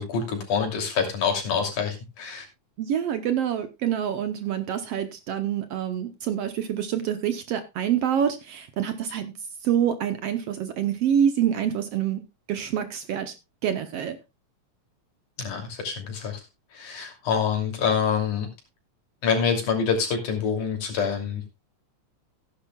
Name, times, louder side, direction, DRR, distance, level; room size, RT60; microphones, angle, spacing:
voice 1, 0.0-2.5 15.4-16.4 16.7-18.5 19.2-21.5, left 6 dB, 85° left, 3 dB, 4.3 m, -26 dB
voice 2, 2.8-9.3 9.6-12.2 12.5-13.3 13.6-14.2, right 9 dB, 65° right, 9 dB, 1.7 m, -26 dB
16.5 x 10.0 x 2.3 m, 0.24 s
omnidirectional pair, 3.4 m